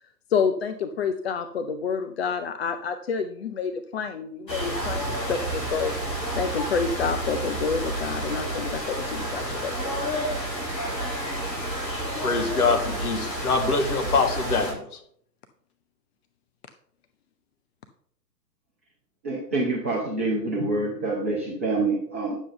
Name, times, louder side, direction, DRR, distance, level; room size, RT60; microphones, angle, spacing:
voice 1, 0.3-5.9 6.4-9.7, left 6 dB, 40° left, 8 dB, 0.6 m, -28 dB
sound 1, 4.5-14.7, right 1 dB, 80° left, 3.5 m, -30 dB
voice 2, 12.2-15.0, left 4 dB, 60° left, 4 dB, 1.9 m, -24 dB
voice 3, 19.2-22.4, right 2 dB, 10° right, -5 dB, 0.4 m, -26 dB
9.9 x 7.1 x 3.8 m, 0.65 s
figure-of-eight pair, 120°, 50 cm